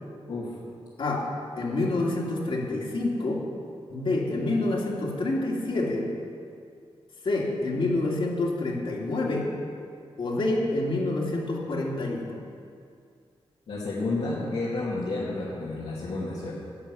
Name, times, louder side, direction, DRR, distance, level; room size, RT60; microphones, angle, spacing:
voice 1, 1.6-3.4 3.9-6.1 7.2-9.5 10.2-12.4, left 2 dB, 60° left, -3 dB, 2.4 m, -27 dB
voice 2, 13.7-16.5, left 2 dB, 80° left, -8 dB, 2.3 m, -30 dB
11.0 x 7.0 x 9.5 m, 2.3 s
wide cardioid pair, 155°, 10 cm